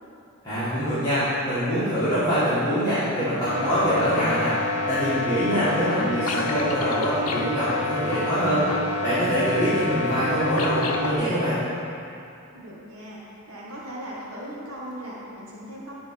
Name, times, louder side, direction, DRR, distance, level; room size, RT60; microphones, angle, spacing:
voice 1, 0.4-4.5 4.9-8.7 9.0-11.6, equal, 20° left, -16 dB, 1.8 m, -24 dB
sound 1, 3.4-11.1, left 2 dB, 85° left, 0.7 m, -28 dB
voice 2, 12.5-13.2 13.5-16.0, equal, 85° right, -6 dB, 1.6 m, -38 dB
11.0 x 3.9 x 4.6 m, 2.6 s
head